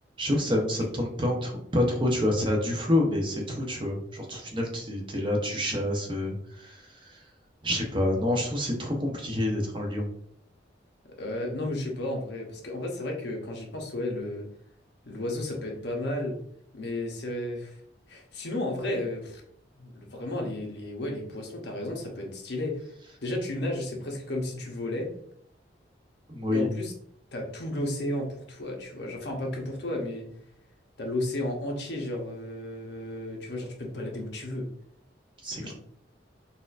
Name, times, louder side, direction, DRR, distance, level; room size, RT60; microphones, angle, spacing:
voice 1, 0.2-7.2 7.6-10.1 26.3-26.7 35.4-35.7, left 1 dB, 25° right, 1 dB, 0.7 m, -28 dB
voice 2, 11.2-14.5 15.0-16.4 16.7-17.8 18.1-19.4 19.7-22.9 23.2-25.1 26.5-26.9 27.3-30.3 31.0-34.7 35.4-35.7, left 1 dB, 65° left, 1 dB, 0.8 m, -33 dB
4.1 x 2.5 x 2.4 m, 0.65 s
head